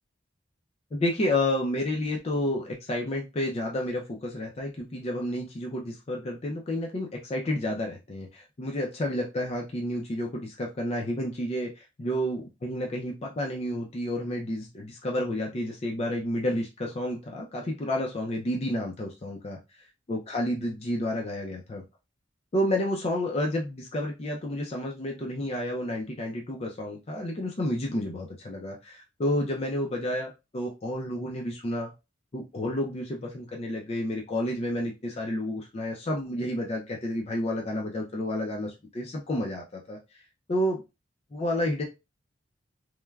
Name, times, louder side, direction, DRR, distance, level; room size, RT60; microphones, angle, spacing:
voice 1, 0.9-19.8 20.1-21.8 22.5-31.9 32.3-40.2 40.5-40.8 41.3-41.8, left 1 dB, 35° left, 0 dB, 0.4 m, -30 dB
3.1 x 2.2 x 2.2 m, 0.26 s
head